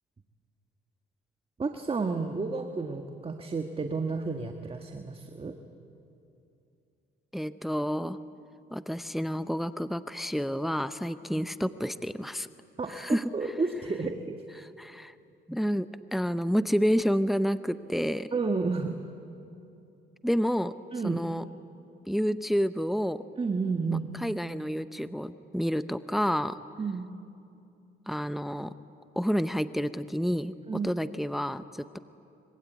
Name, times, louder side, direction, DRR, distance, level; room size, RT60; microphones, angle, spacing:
voice 1, 1.6-5.6 12.8-14.4 18.3-19.0 20.9-21.2 23.4-24.1 26.8-27.1 30.7-30.9, right 4 dB, 30° right, 5 dB, 1.6 m, -31 dB
voice 2, 7.3-8.2 8.7-12.5 12.9-13.2 14.6-15.1 15.5-18.3 20.2-20.7 21.0-21.4 22.1-23.2 23.9-26.6 28.1-28.7 29.2-32.0, equal, ahead, 13 dB, 0.7 m, -29 dB
25.0 x 24.5 x 9.4 m, 2.7 s
cardioid pair, 90°, 20 cm